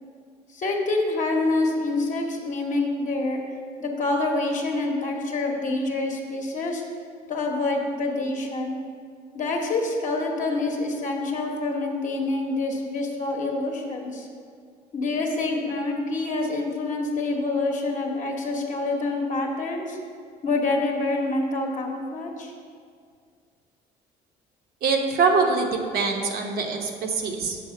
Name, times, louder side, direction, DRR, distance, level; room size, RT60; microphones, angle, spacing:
voice 1, 0.5-3.4 3.8-6.8 7.3-8.8 9.3-14.3 14.9-20.0 20.4-22.5, left 2 dB, 50° left, 0 dB, 1.3 m, -26 dB
voice 2, 24.8-27.6, right 4 dB, 65° right, 2 dB, 1.1 m, -24 dB
7.0 x 4.8 x 6.5 m, 2.2 s
cardioid pair, 110°, 17 cm